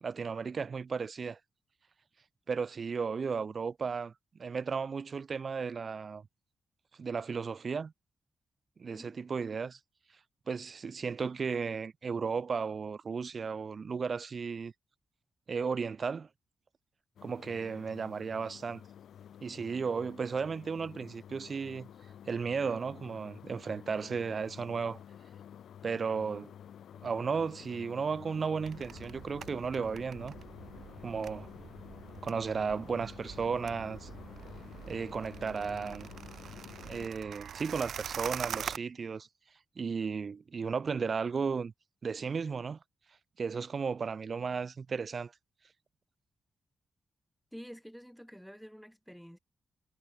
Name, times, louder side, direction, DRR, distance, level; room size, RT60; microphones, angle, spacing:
voice 1, 0.0-1.4 2.5-4.1 4.4-6.2 7.0-7.9 8.8-9.8 10.5-14.7 15.5-16.3 17.2-18.8 19.4-21.9 22.3-25.0 25.8-26.5 27.0-30.3 31.0-31.5 32.2-34.1 34.9-36.1 36.8-39.3 39.8-41.7 42.0-42.8 43.4-45.3, right 5 dB, 40° right, 0.9 m, -34 dB
voice 2, 8.9-9.2 47.5-49.4, equal, ahead, 5.8 m, -49 dB
sound 1, 17.2-37.1, left 9 dB, 85° left, 1.2 m, -51 dB
sound 2, 28.6-38.8, right 8 dB, 70° right, 3.1 m, -44 dB
wide cardioid pair, 170°, 0 cm